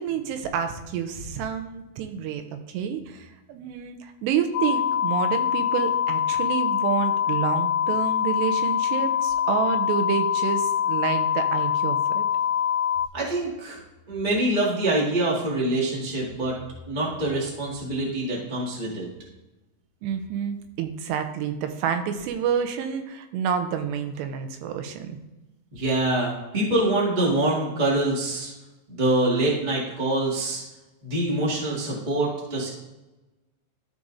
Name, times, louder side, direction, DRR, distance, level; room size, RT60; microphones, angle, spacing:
voice 1, 0.0-12.3 20.0-25.2, right 8 dB, 90° right, 7 dB, 2.9 m, -29 dB
sound 1, 4.5-13.1, left 9 dB, 90° left, 1.8 m, -24 dB
voice 2, 13.1-13.8 14.1-16.5 16.9-19.0 25.7-28.5 28.9-30.6 31.0-32.7, right 1 dB, 25° right, -4 dB, 0.9 m, -25 dB
13.5 x 5.0 x 2.7 m, 1.0 s
omnidirectional pair, 4.8 m